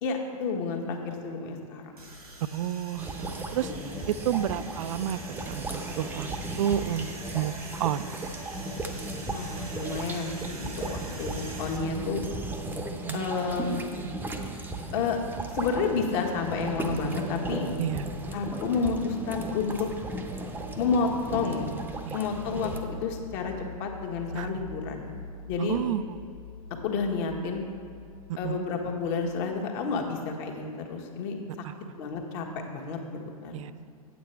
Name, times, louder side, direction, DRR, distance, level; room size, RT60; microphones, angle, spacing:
voice 1, 0.0-1.9 3.3-4.1 9.3-12.2 13.1-13.9 14.9-15.2 15.5-17.7 18.3-19.9 20.8-21.7 22.1-25.1 25.5-25.8 26.8-27.6 28.4-31.4 32.0-33.0 33.4-33.6, left 5 dB, 45° left, 2 dB, 1.4 m, -30 dB
sound 1, 2.0-11.8, right 2 dB, 85° right, 1.6 m, -45 dB
voice 2, 2.5-3.7 4.1-5.2 5.5-6.3 6.6-7.1 7.3-8.1 12.9-13.3 17.8-18.0 22.1-22.2 24.3-24.5 25.6-26.0 28.3-28.7 31.6-31.7 33.5-33.7, right 11 dB, 60° right, 15 dB, 0.4 m, -30 dB
sound 2, 3.0-22.8, right 2 dB, 10° right, 0.7 m, -36 dB
sound 3, 22.3-29.7, left 3 dB, 75° left, 1.1 m, -44 dB
8.5 x 8.4 x 4.4 m, 2.1 s
figure-of-eight pair, 100°, 19 cm